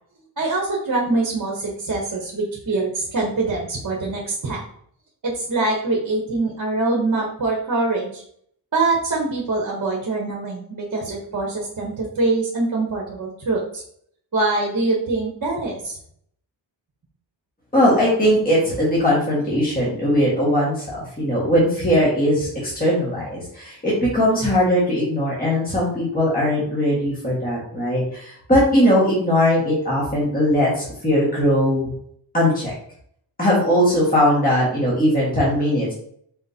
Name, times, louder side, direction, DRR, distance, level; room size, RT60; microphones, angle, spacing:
voice 1, 0.4-4.6 5.2-8.2 8.7-13.8 14.3-16.0, right 3 dB, 45° right, -1 dB, 1.0 m, -24 dB
voice 2, 17.7-31.9 32.3-32.7 33.4-35.9, equal, 20° left, -6 dB, 1.6 m, -19 dB
4.2 x 3.6 x 2.8 m, 0.65 s
wide cardioid pair, 75°, 45 cm